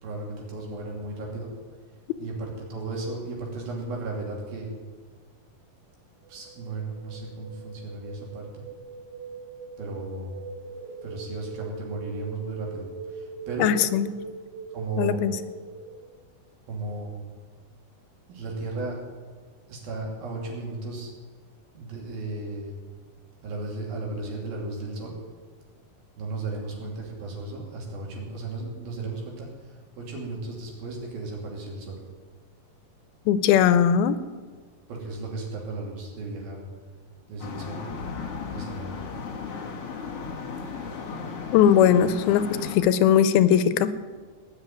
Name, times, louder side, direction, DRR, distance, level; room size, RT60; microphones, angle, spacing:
voice 1, 0.0-1.5 2.2-4.7 6.3-8.6 9.8-10.3 11.0-13.7 14.7-15.2 16.7-17.3 18.3-19.0 19.7-21.1 21.7-22.7 23.4-25.2 26.2-32.0 34.9-36.6 37.3-37.9 38.5-38.9, right 3 dB, 75° right, -1 dB, 4.8 m, -35 dB
sound 1, 6.2-16.2, right 5 dB, 60° right, 1.1 m, -41 dB
voice 2, 13.6-14.1 15.0-15.4 33.3-34.2 41.5-44.0, left 9 dB, 90° left, 13 dB, 2.7 m, -19 dB
sound 2, 37.4-42.8, left 5 dB, 50° left, 2.2 m, -35 dB
19.0 x 6.5 x 9.4 m, 1.5 s
omnidirectional pair, 4.2 m